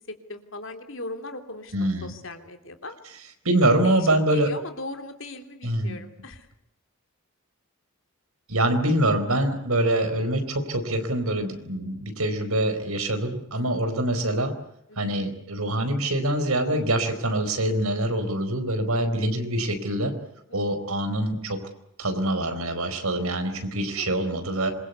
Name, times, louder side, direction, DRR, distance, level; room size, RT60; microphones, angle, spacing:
voice 1, 0.1-3.0 3.8-6.5 13.5-13.8 14.9-15.0 20.5-20.6 23.9-24.2, left 2 dB, 60° left, 7 dB, 3.1 m, -39 dB
voice 2, 1.7-2.1 3.4-4.5 5.6-6.0 8.5-14.5 15.0-20.1 20.5-21.6 22.0-24.7, right 1 dB, 80° right, 8 dB, 4.5 m, -25 dB
26.5 x 23.0 x 8.2 m, 0.78 s
head